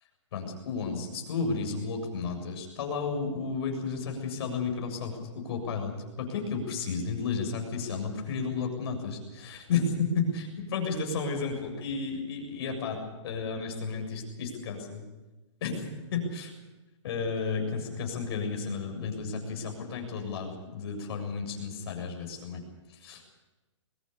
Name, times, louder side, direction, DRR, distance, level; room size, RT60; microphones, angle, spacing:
voice 1, 0.3-15.0 15.6-16.5 17.0-22.6 22.9-23.2, left 4 dB, 50° left, 3 dB, 7.3 m, -32 dB
22.5 x 21.5 x 6.8 m, 1.1 s
hypercardioid pair, 150°, 16 cm